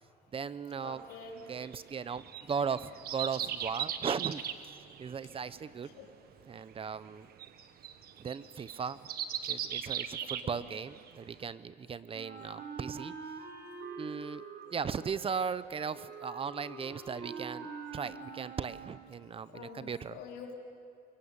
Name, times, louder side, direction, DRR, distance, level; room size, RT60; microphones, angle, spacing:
voice 1, 0.3-1.1 1.5-4.4 5.0-5.9 6.4-7.3 8.2-9.0 9.4-13.1 14.0-14.4 14.7-20.2, right 6 dB, 35° right, 15 dB, 0.8 m, -37 dB
voice 2, 0.8-1.4 5.9-6.1 10.2-10.7 19.5-20.5, left 5 dB, 85° left, 1 dB, 4.2 m, -47 dB
sound 1, 1.1-11.1 11.5-11.6, right 9 dB, 65° right, 1.4 m, -39 dB
Wind instrument woodwind instrument, 12.1-19.1, right 4 dB, 80° right, 4.7 m, -45 dB
23.5 x 23.0 x 8.9 m, 2.4 s
cardioid pair, 110°, 17 cm